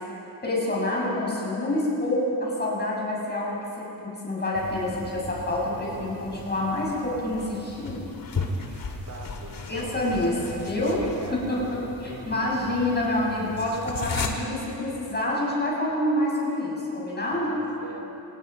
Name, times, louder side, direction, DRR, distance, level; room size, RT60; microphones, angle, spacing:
voice 1, 0.4-8.1 9.7-11.0 11.3-17.6, left 1 dB, 20° left, -3 dB, 6.5 m, -27 dB
sound 1, 4.5-14.3, left 4 dB, 45° left, 2.1 m, -36 dB
voice 2, 8.3-12.6 13.5-13.6 17.3-18.0, right 3 dB, 40° right, 1 dB, 2.9 m, -42 dB
27.0 x 18.0 x 5.5 m, 3.0 s
wide cardioid pair, 130°, 45 cm